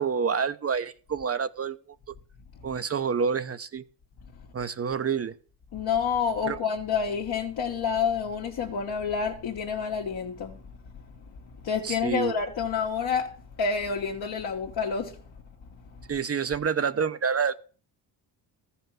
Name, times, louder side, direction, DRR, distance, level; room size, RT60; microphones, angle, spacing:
voice 1, 0.0-1.8 2.1-2.2 2.6-3.8 4.5-5.3 6.5-6.6 11.8-12.3 16.1-17.5, right 6 dB, 35° right, 0.8 m, -28 dB
voice 2, 5.7-10.6 11.6-15.2, left 6 dB, 60° left, 1.7 m, -28 dB
14.0 x 5.7 x 7.5 m
cardioid pair, 95°, 42 cm